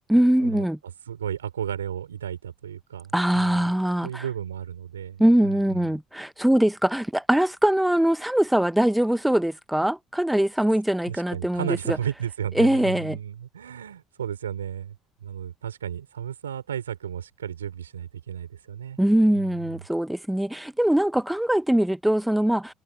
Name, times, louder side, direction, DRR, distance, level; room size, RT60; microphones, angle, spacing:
voice 1, 0.1-0.8 3.1-4.2 5.2-12.0 12.6-13.2 19.0-22.7, right 1 dB, 5° right, 0.9 m, -22 dB
voice 2, 1.1-3.6 4.0-5.9 11.1-15.0 15.2-19.0 19.4-19.9, right 9 dB, 90° right, 5.2 m, -34 dB
hypercardioid pair, 60°, 0 cm